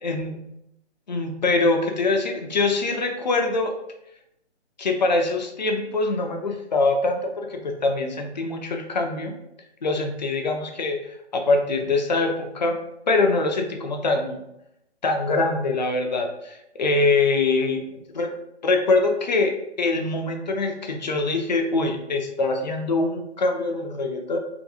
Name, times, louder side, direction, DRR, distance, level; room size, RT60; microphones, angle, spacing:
voice 1, 0.0-0.4 1.1-3.7 4.8-9.3 9.8-11.0 11.3-12.8 13.1-14.4 15.0-18.3 18.6-24.4, left 3 dB, 40° left, 3 dB, 0.5 m, -23 dB
3.6 x 2.5 x 2.7 m, 0.82 s
figure-of-eight pair, 145°, 34 cm